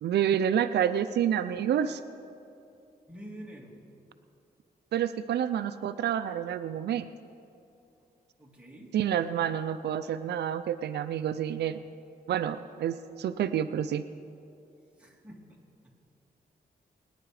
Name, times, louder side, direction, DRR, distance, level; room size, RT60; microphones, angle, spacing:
voice 1, 0.0-2.0 4.9-7.1 8.9-11.9 12.3-14.1, right 9 dB, 85° right, 11 dB, 0.5 m, -28 dB
voice 2, 3.1-3.8 8.4-9.0 15.0-15.4, right 1 dB, 5° right, -2 dB, 2.4 m, -46 dB
23.0 x 10.0 x 4.9 m, 2.6 s
wide cardioid pair, 115°, 17 cm